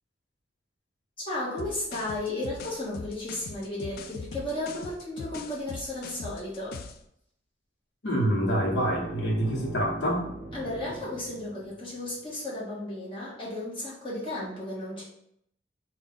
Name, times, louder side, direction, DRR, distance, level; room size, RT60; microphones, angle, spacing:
voice 1, 1.3-6.8 10.5-15.0, left 1 dB, 30° left, -7 dB, 1.3 m, -34 dB
sound 1, 1.6-7.1, left 4 dB, 55° left, 0.3 m, -41 dB
voice 2, 8.0-10.3, equal, 75° left, -1 dB, 0.9 m, -26 dB
sound 2, 8.4-12.3, right 2 dB, 20° right, 0.4 m, -40 dB
3.5 x 2.3 x 3.7 m, 0.72 s
head